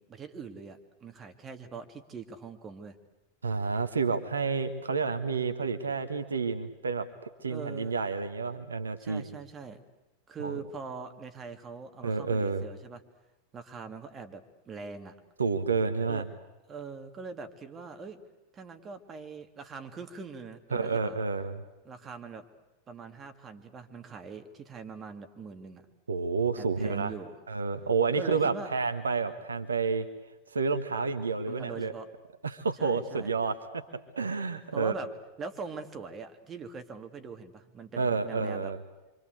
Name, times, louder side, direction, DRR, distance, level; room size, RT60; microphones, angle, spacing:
voice 1, 0.0-3.0 7.5-7.9 9.0-9.8 10.3-13.0 13.5-15.1 16.1-16.3 16.7-18.2 18.5-21.2 21.8-22.4 22.9-25.9 26.6-27.4 28.1-28.7 31.5-32.1 32.8-33.3 34.7-35.1 35.4-38.7, right 5 dB, 25° right, 6 dB, 2.5 m, -42 dB
voice 2, 3.4-7.1 7.4-9.3 10.4-10.6 12.0-12.6 15.4-16.3 20.7-21.6 26.1-27.1 27.5-30.1 30.5-31.9 32.4-33.8 34.1-34.9 38.0-38.8, right 4 dB, 75° right, 9 dB, 1.6 m, -29 dB
27.0 x 25.5 x 8.2 m, 1.1 s
figure-of-eight pair, 90°, 0 cm